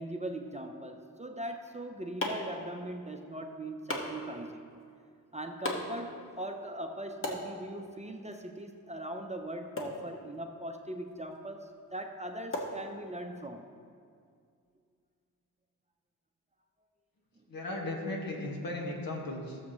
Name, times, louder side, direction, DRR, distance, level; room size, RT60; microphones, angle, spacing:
voice 1, 0.0-4.7 5.3-13.7, right 1 dB, 20° right, 4 dB, 0.7 m, -40 dB
sound 1, 1.5-13.5, left 1 dB, 35° left, 1.7 m, -42 dB
voice 2, 17.5-19.6, left 2 dB, 65° left, -1 dB, 1.8 m, -36 dB
16.0 x 7.2 x 3.1 m, 2.2 s
cardioid pair, 80°, 38 cm